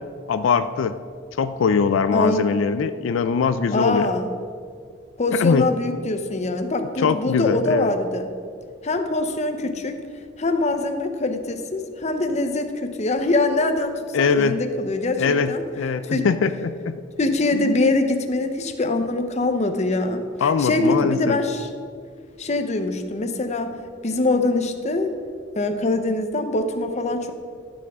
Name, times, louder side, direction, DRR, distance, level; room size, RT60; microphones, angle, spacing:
voice 1, 0.3-1.0 1.4-4.1 5.3-5.7 7.0-7.9 14.1-14.6 15.2-17.0 17.5-17.8 20.4-21.4, left 5 dB, 85° left, 11 dB, 0.4 m, -22 dB
voice 2, 2.1-2.4 3.7-4.3 5.2-8.3 8.8-10.0 10.4-15.6 16.0-16.3 17.2-21.7 22.4-23.7 24.0-25.1 25.5-27.3, left 2 dB, 35° left, 7 dB, 0.7 m, -23 dB
14.0 x 7.1 x 3.6 m, 2.2 s
head